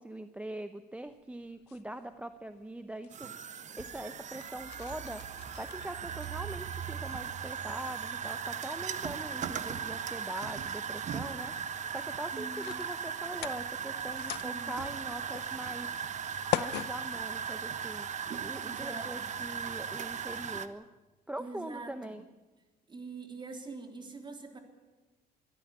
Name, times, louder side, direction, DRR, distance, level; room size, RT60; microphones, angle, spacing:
voice 1, 0.0-3.4 3.8-15.9 16.5-18.1 18.4-20.9 21.3-22.3, right 1 dB, 5° right, 9 dB, 0.8 m, -42 dB
sound 1, 1.1-18.1, left 16 dB, 85° left, 0.6 m, -44 dB
sound 2, 3.1-20.7, right 7 dB, 45° right, 1.2 m, -38 dB
voice 2, 12.3-12.7 14.2-14.8 18.6-19.3 21.4-22.2 22.9-24.6, right 3 dB, 25° right, 4 dB, 3.4 m, -44 dB
23.0 x 13.5 x 9.6 m, 1.2 s
cardioid pair, 110°, 17 cm